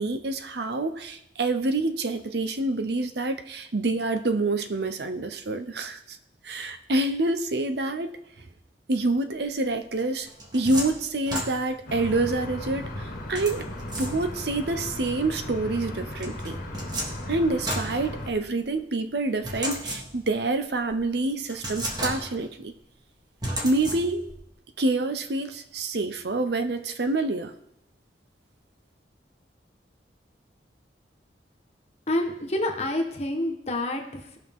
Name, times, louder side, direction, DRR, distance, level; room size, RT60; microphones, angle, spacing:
voice 1, 0.0-6.2 6.4-8.1 8.9-10.3 10.5-13.7 14.0-16.6 17.3-22.7 23.6-24.3 24.8-27.5, right 2 dB, 65° right, 8 dB, 0.8 m, -27 dB
sound 1, 10.0-12.0 13.4-14.6 16.2-18.7 19.4-20.4 20.9-21.0 21.5-22.6 23.4-24.4, right 1 dB, 25° right, 1.5 m, -34 dB
sound 2, 11.9-18.3, left 1 dB, 50° left, 1.5 m, -36 dB
voice 2, 32.1-34.4, left 1 dB, 35° left, 2 dB, 1.3 m, -28 dB
17.5 x 6.0 x 3.7 m, 0.80 s
head